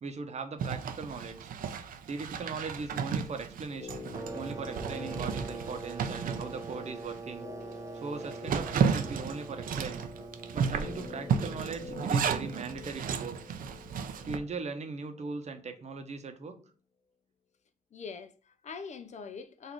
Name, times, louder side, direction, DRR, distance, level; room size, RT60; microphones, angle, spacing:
voice 1, 0.0-1.4 2.1-4.0 4.3-7.5 7.7-10.1 10.5-13.6 14.2-16.6, right 4 dB, 50° right, 0.8 m, -39 dB
Zipper (clothing), 0.6-7.2 7.6-7.7 8.1-14.4, right 6 dB, 80° right, 0.5 m, -33 dB
sound 1, 3.7-15.8 16.0-16.1, left 5 dB, 20° left, 1.1 m, -48 dB
sound 2, 4.1-12.5, right 3 dB, 25° right, 0.5 m, -44 dB
voice 2, 17.9-19.7, left 5 dB, 55° left, 0.5 m, -43 dB
4.0 x 2.6 x 4.5 m
cardioid pair, 95°, 14 cm